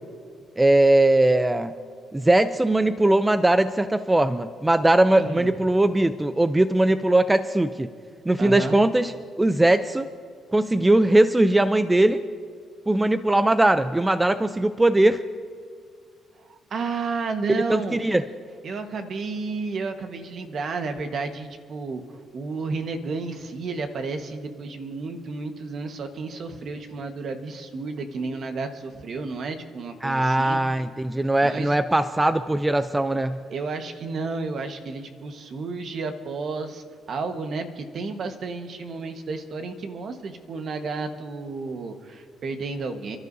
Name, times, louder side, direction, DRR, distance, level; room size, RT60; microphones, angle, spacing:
voice 1, 0.6-1.8 2.1-7.9 8.3-9.1 9.4-10.1 10.5-12.2 12.9-15.2 17.5-18.2 30.0-33.4, right 1 dB, 15° right, 11 dB, 0.5 m, -20 dB
voice 2, 5.2-5.5 8.4-8.8 16.4-18.0 18.6-30.6 31.4-31.7 33.5-43.2, right 4 dB, 60° right, 6 dB, 1.4 m, -32 dB
30.0 x 12.5 x 2.7 m, 2.1 s
cardioid pair, 90°, 0 cm